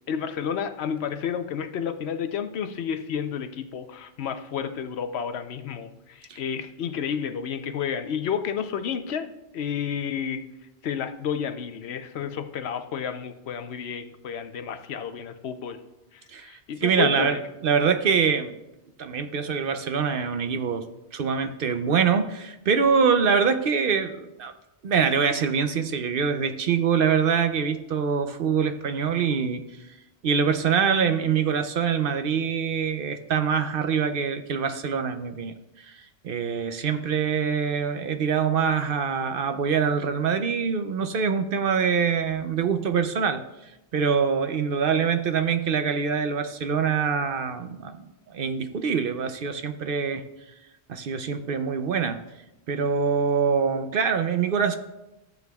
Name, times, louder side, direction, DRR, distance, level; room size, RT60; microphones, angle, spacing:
voice 1, 0.1-10.4 10.8-15.8 16.1-17.4, left 7 dB, 80° left, 9 dB, 0.9 m, -31 dB
voice 2, 16.3-18.6 19.0-20.9 21.1-24.5 24.8-29.6 30.2-36.0 36.2-43.4 43.9-48.0 48.3-50.2 50.9-52.2 52.7-54.8, right 6 dB, 65° right, 9 dB, 0.8 m, -24 dB
14.0 x 7.9 x 2.3 m, 0.94 s
omnidirectional pair, 1.1 m